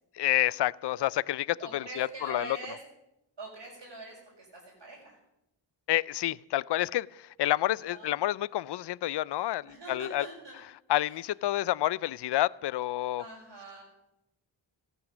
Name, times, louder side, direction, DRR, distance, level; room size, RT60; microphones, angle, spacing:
voice 1, 0.2-2.6 5.9-10.3 10.9-13.2, left 14 dB, 60° left, 0.5 m, -29 dB
voice 2, 1.6-2.8 3.4-5.2 7.9-8.1 9.6-10.6 11.1-11.2 13.2-13.8, right 2 dB, 70° right, 5.9 m, -44 dB
14.5 x 11.5 x 7.2 m
cardioid pair, 45°, 48 cm